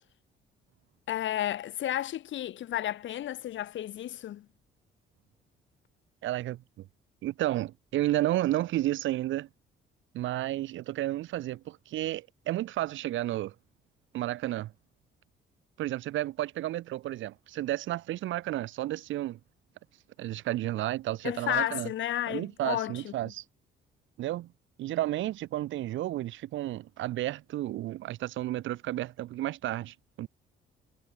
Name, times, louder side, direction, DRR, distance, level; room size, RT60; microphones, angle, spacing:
voice 1, 1.1-4.4 21.2-23.3, left 12 dB, 70° left, 1.7 m, -32 dB
voice 2, 6.2-6.9 7.2-9.5 10.1-13.5 14.1-14.7 15.8-19.4 20.2-21.9 22.3-23.4 24.2-24.5 24.8-30.3, right 14 dB, 75° right, 0.7 m, -32 dB
cardioid pair, 90°, 20 cm